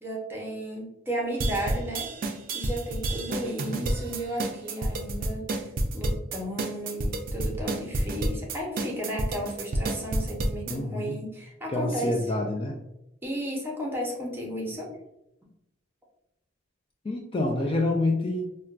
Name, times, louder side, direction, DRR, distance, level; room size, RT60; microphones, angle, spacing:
voice 1, 0.0-2.1 2.5-12.2 13.2-14.9, equal, 10° right, -2 dB, 0.7 m, -34 dB
sound 1, 1.4-10.7, right 2 dB, 45° right, 0.4 m, -29 dB
voice 2, 10.7-11.2 11.7-12.8 17.0-18.5, left 2 dB, 30° left, 0 dB, 0.4 m, -27 dB
4.3 x 2.2 x 2.4 m, 0.87 s
head